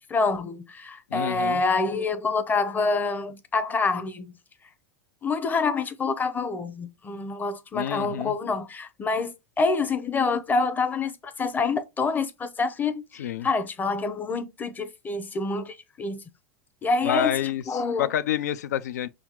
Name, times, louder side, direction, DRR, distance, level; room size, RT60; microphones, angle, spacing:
voice 1, 0.0-4.3 5.2-16.2 16.8-17.3 17.7-18.1, left 4 dB, 20° left, 0.7 m, -27 dB
voice 2, 1.1-1.6 7.7-8.3 13.2-13.5 17.0-19.1, left 10 dB, 85° left, 0.4 m, -28 dB
5.5 x 2.4 x 3.0 m
hypercardioid pair, 105°, 9 cm